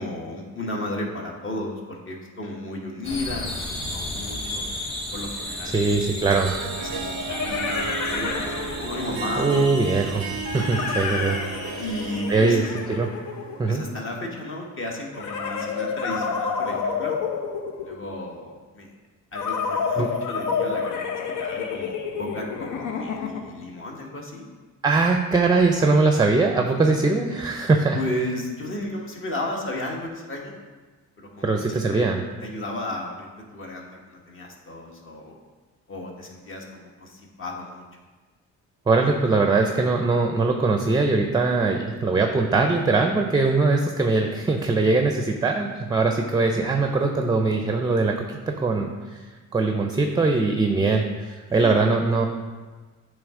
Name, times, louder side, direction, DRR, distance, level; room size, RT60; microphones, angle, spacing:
voice 1, 0.0-3.5 3.9-4.6 5.1-6.1 6.8-8.5 8.8-9.8 10.8-11.0 11.8-12.7 13.7-17.1 17.8-18.9 19.3-24.4 27.9-30.6 31.2-32.1 32.4-35.4 35.9-37.8 51.5-51.8, left 1 dB, 45° left, -1 dB, 1.4 m, -34 dB
sound 1, 3.0-12.6, left 1 dB, 20° left, 1.4 m, -34 dB
sound 2, 5.4-5.5 6.8-9.2 10.4-13.9 15.1-18.2 19.3-23.6, left 5 dB, 80° left, 0.7 m, -29 dB
voice 2, 5.7-6.5 9.4-10.3 10.5-11.4 11.7-11.8 12.3-12.6 12.9-13.1 13.6-13.8 20.0-20.1 24.8-28.0 31.4-32.2 38.9-49.2 49.5-52.3, right 3 dB, 15° right, 4 dB, 0.5 m, -21 dB
Harp, 6.3-14.7, right 9 dB, 65° right, 0.4 m, -36 dB
8.7 x 3.3 x 3.7 m, 1.3 s
cardioid pair, 90°, 30 cm